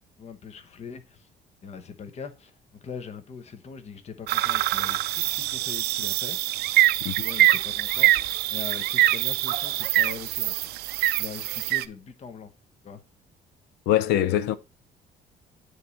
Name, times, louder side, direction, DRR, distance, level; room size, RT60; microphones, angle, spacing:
voice 1, 0.2-1.3 1.6-6.4 7.2-10.6 11.2-12.5 12.8-13.0, left 6 dB, 40° left, 1.0 m, -41 dB
sound 1, 4.3-11.8, right 15 dB, 75° right, 0.5 m, -24 dB
voice 2, 13.9-14.6, left 12 dB, 90° left, 0.6 m, -23 dB
9.5 x 3.3 x 4.1 m
cardioid pair, 110°, 17 cm